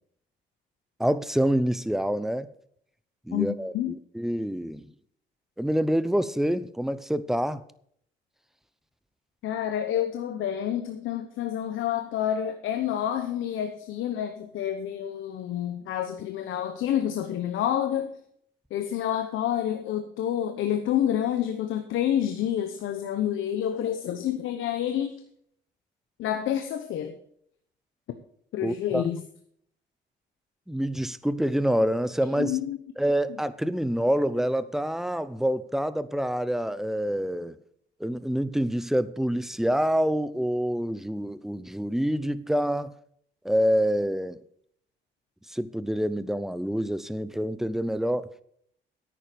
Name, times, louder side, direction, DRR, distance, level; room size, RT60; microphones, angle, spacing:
voice 1, 1.0-2.5 3.3-4.9 5.6-7.6 28.6-29.0 30.7-32.6 33.0-37.6 38.0-42.9 43.4-44.4 45.5-48.3, equal, ahead, 0.7 m, -26 dB
voice 2, 3.3-3.9 9.4-18.1 18.7-25.1 26.2-27.2 28.5-29.2 32.4-32.8, left 10 dB, 80° left, 1.0 m, -28 dB
10.0 x 9.0 x 5.2 m
cardioid pair, 90°, 20 cm